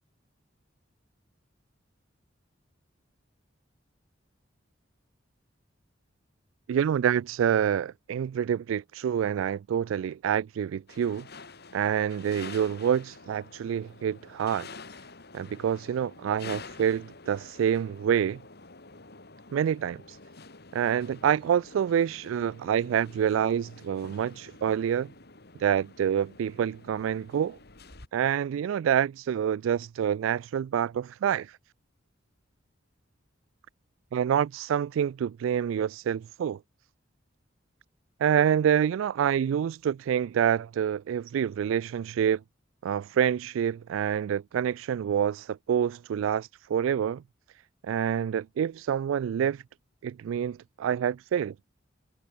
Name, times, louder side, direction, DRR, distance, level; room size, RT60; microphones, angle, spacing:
voice 1, 6.7-11.3 11.7-14.7 15.3-18.4 19.5-20.2 20.7-25.1 25.6-27.6 28.1-31.6 34.1-36.6 38.2-42.4 42.8-47.2 47.8-49.6 50.0-51.5, right 8 dB, 85° right, 0.3 m, -27 dB
sound 1, 10.9-28.1, left 4 dB, 55° left, 3.4 m, -48 dB
head